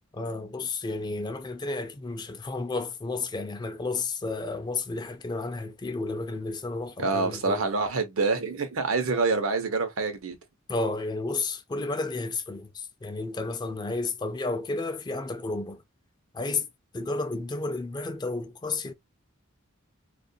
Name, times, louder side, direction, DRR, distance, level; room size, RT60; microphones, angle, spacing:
voice 1, 0.1-7.6 10.7-15.8 16.3-16.7 16.9-18.9, left 3 dB, 20° left, 0.4 m, -32 dB
voice 2, 7.0-10.4, right 3 dB, 85° right, 0.8 m, -26 dB
2.4 x 2.2 x 2.6 m
head